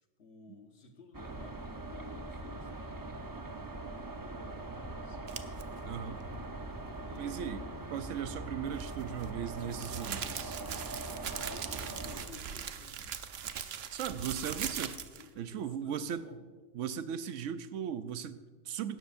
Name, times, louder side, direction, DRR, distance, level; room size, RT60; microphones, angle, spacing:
voice 1, 0.2-5.3 7.0-7.8 11.2-13.1 15.2-16.4, left 3 dB, 60° left, 3 dB, 1.6 m, -54 dB
sound 1, 1.1-12.3, right 2 dB, 20° right, 0.6 m, -42 dB
sound 2, 5.3-5.6 8.7-15.3, right 8 dB, 60° right, 0.9 m, -40 dB
voice 2, 5.8-6.2 7.2-7.6 7.9-10.6 13.9-15.0 15.4-16.3 16.7-19.0, right 8 dB, 85° right, 12 dB, 1.0 m, -38 dB
sound 3, 7.1-13.5, equal, 20° left, 4.1 m, -58 dB
17.0 x 12.5 x 2.6 m, 1.4 s
omnidirectional pair, 1.3 m